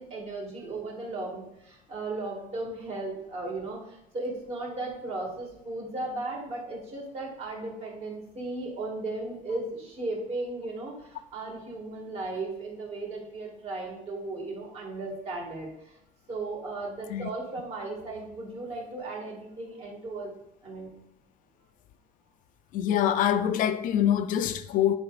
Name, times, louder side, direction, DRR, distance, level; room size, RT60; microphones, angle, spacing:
voice 1, 0.0-15.9 16.3-20.3 20.6-20.9, right 2 dB, 40° right, 2.0 m, -36 dB
voice 2, 22.7-25.0, left 10 dB, 55° left, 0.4 m, -25 dB
9.5 x 4.8 x 2.5 m
cardioid pair, 145°, 17 cm